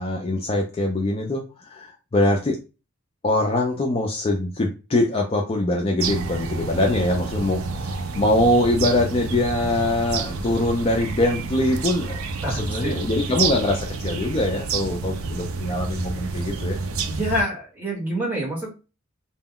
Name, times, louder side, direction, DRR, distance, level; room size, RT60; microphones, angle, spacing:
voice 1, 0.0-2.6 3.2-12.2 12.5-16.8, left 1 dB, 25° left, 0 dB, 0.3 m, -23 dB
sound 1, 6.0-17.4, right 4 dB, 70° right, 0.4 m, -29 dB
voice 2, 12.4-12.9 17.1-18.7, right 1 dB, 10° right, -5 dB, 1.1 m, -27 dB
2.2 x 2.1 x 3.5 m, 0.30 s
head